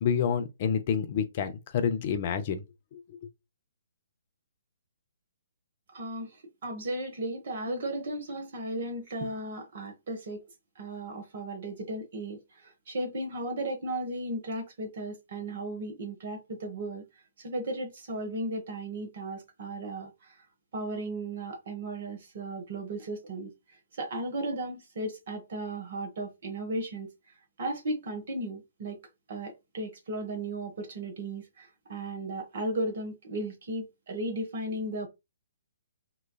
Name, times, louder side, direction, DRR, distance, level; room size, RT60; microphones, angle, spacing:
voice 1, 0.0-2.6 2.9-3.0, left 7 dB, 40° left, 0.5 m, -28 dB
voice 2, 5.9-10.4 10.8-17.0 17.4-20.3 20.7-23.5 23.9-27.1 27.6-29.0 29.3-35.1, right 1 dB, 45° right, 0.8 m, -35 dB
3.0 x 2.2 x 2.2 m
figure-of-eight pair, 130°, 0 cm